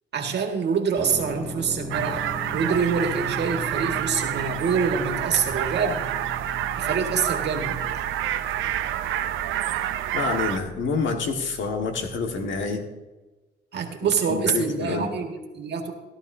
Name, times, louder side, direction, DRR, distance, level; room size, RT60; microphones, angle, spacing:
voice 1, 0.1-6.1 6.8-7.8 13.7-15.9, right 5 dB, 60° right, 4 dB, 1.9 m, -26 dB
sound 1, 1.0-12.6, right 1 dB, 15° left, 4.0 m, -39 dB
sound 2, 1.9-10.6, right 11 dB, 80° right, 0.6 m, -28 dB
voice 2, 10.1-12.8 14.0-15.1, left 4 dB, 70° left, 4 dB, 1.7 m, -28 dB
16.0 x 11.5 x 2.7 m, 1.2 s
cardioid pair, 90°, 20 cm